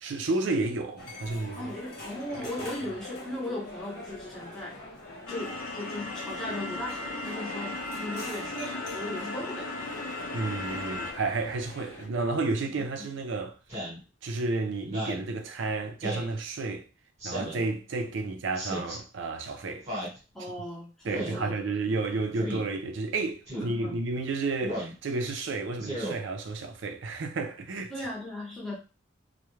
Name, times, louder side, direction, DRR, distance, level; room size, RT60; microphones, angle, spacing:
voice 1, 0.0-1.7 2.3-2.5 10.3-13.6 14.2-16.8 17.2-19.9 21.0-27.9, right 3 dB, 60° right, 0.4 m, -31 dB
sound 1, 1.0-12.1, left 1 dB, 50° left, 0.8 m, -43 dB
voice 2, 1.6-4.8 5.3-9.7 13.0-13.1 20.3-21.9 23.6-24.0 27.9-28.8, left 1 dB, ahead, 0.7 m, -38 dB
sound 2, 5.3-11.1, left 2 dB, 75° left, 0.4 m, -36 dB
Speech synthesizer, 13.7-14.0 14.8-15.3 16.0-16.3 17.2-17.7 18.6-19.0 19.9-20.2 21.1-21.4 22.4-22.6 23.5-23.7 24.6-25.0 25.8-26.2, equal, 30° right, 1.0 m, -35 dB
2.2 x 2.1 x 3.0 m
head